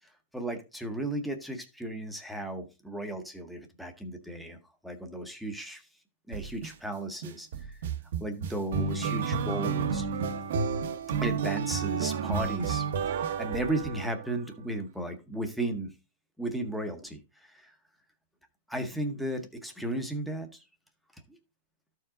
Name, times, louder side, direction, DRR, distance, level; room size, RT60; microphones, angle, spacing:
voice 1, 0.3-4.6 4.8-5.8 6.3-7.8 8.2-10.1 11.2-15.9 16.4-17.7 18.7-20.5 21.3-21.4, right 1 dB, ahead, 5 dB, 0.8 m, -35 dB
sound 1, 6.3-6.7 7.2-14.4, right 6 dB, 55° right, 0.9 m, -31 dB
13.5 x 4.7 x 3.7 m, 0.29 s
supercardioid pair, 175°, 0 cm